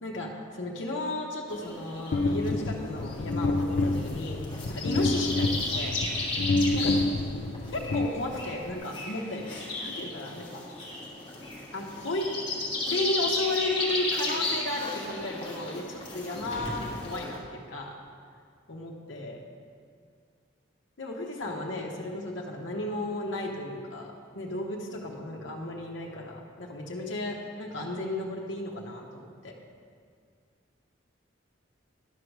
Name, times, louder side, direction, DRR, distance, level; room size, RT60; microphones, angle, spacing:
voice 1, 0.0-6.0 6.7-6.9 7.7-9.5 9.8-10.6 11.7-12.3 12.9-17.9 18.7-19.4 21.0-29.5, left 2 dB, 80° left, -1 dB, 1.0 m, -34 dB
sound 1, 1.5-17.4, left 2 dB, 25° left, 1.5 m, -35 dB
sound 2, 2.1-8.7, left 2 dB, 60° left, 0.4 m, -28 dB
11.0 x 4.7 x 6.5 m, 2.1 s
head